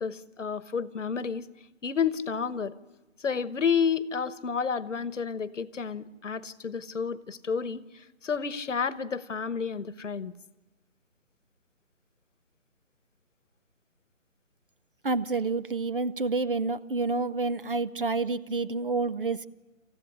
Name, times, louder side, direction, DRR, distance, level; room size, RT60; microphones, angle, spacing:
voice 1, 0.0-1.4 1.8-2.7 3.2-7.8 8.2-10.3, left 6 dB, 65° left, 16 dB, 1.2 m, -30 dB
voice 2, 15.0-19.5, right 3 dB, 45° right, 16 dB, 0.7 m, -28 dB
27.5 x 14.5 x 9.9 m, 1.2 s
figure-of-eight pair, 165°, 39 cm